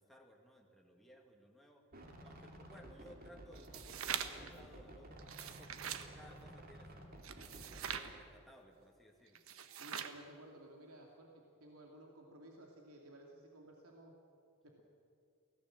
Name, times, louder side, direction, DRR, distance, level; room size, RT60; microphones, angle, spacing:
voice 1, 0.0-1.9 2.2-7.2 7.6-9.5, equal, ahead, 0 dB, 2.0 m, -60 dB
sound 1, 1.9-8.1, right 1 dB, 45° right, 2.7 m, -54 dB
sound 2, 3.6-4.5 5.2-6.1 7.2-8.1 9.4-10.2, right 8 dB, 70° right, 1.2 m, -43 dB
voice 2, 9.8-14.1 14.6-14.8, right 1 dB, 85° right, 0 dB, 2.7 m, -56 dB
24.0 x 17.0 x 7.7 m, 2.3 s
head